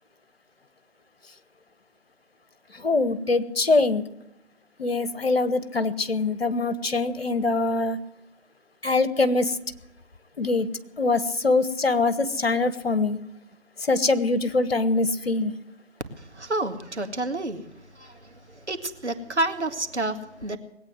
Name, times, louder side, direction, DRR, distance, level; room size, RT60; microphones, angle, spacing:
voice 1, 2.7-4.0 4.8-8.0 8.8-9.6 10.4-10.7 11.0-13.2 13.8-15.5, left 3 dB, 60° left, 13 dB, 1.3 m, -23 dB
voice 2, 16.3-17.6 18.0-18.1 18.7-20.6, right 2 dB, 75° right, 7 dB, 2.1 m, -29 dB
20.0 x 9.0 x 7.7 m, 0.83 s
figure-of-eight pair, 150°, 34 cm